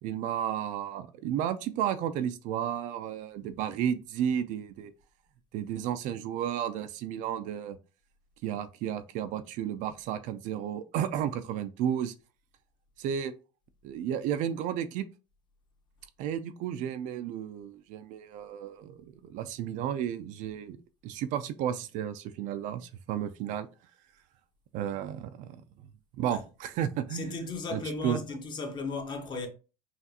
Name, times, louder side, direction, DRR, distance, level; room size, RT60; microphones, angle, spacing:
voice 1, 0.0-4.9 5.5-7.8 8.4-12.1 13.0-13.3 13.8-15.0 16.2-20.8 21.0-23.7 24.7-25.6 26.2-28.2, right 9 dB, 50° right, 0.4 m, -33 dB
voice 2, 27.1-29.5, left 3 dB, 30° left, 0.8 m, -35 dB
5.7 x 2.4 x 2.8 m
cardioid pair, 150°, 16 cm